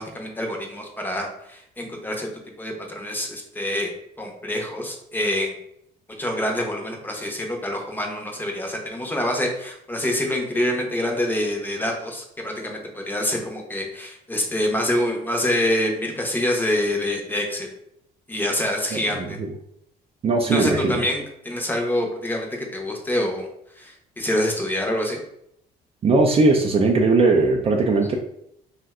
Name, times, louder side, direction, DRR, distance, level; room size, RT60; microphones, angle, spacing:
voice 1, 0.0-2.3 2.6-3.9 4.2-5.5 6.2-17.7 18.3-19.4 20.5-23.5 23.7-25.2, left 1 dB, 10° left, 1 dB, 0.6 m, -26 dB
voice 2, 18.9-19.5 20.2-21.0 26.0-28.1, right 3 dB, 35° right, 1 dB, 0.4 m, -19 dB
2.6 x 2.1 x 3.5 m, 0.74 s
cardioid pair, 110°, 17 cm